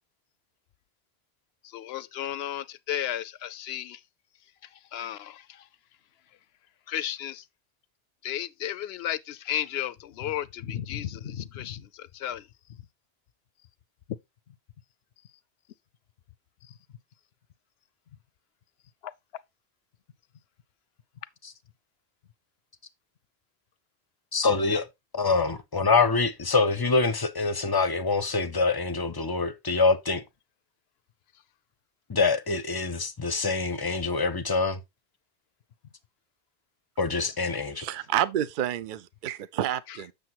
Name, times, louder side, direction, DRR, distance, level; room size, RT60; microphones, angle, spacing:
voice 1, 1.6-4.0 4.9-5.7 6.9-7.4 8.2-12.5 19.0-19.1 39.9-40.0, left 11 dB, 75° left, 0.8 m, -34 dB
voice 2, 24.3-24.9 25.1-30.2 32.1-34.8 37.0-37.8, left 4 dB, 25° left, 0.6 m, -25 dB
voice 3, 37.8-40.1, right 11 dB, 60° right, 0.6 m, -29 dB
7.7 x 6.6 x 2.9 m
omnidirectional pair, 1.1 m